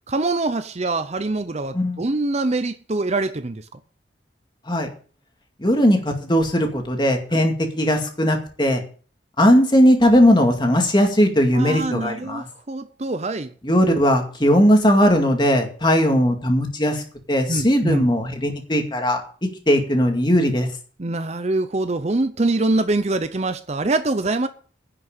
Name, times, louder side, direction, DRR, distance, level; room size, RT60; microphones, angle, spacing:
voice 1, 0.1-3.7 7.3-7.4 11.5-13.5 17.5-18.0 21.0-24.5, right 2 dB, 35° right, 0.6 m, -24 dB
voice 2, 5.6-8.8 9.4-12.4 13.6-17.0 17.3-19.2 19.7-20.7, equal, 25° left, 2.2 m, -18 dB
11.0 x 6.3 x 8.9 m
head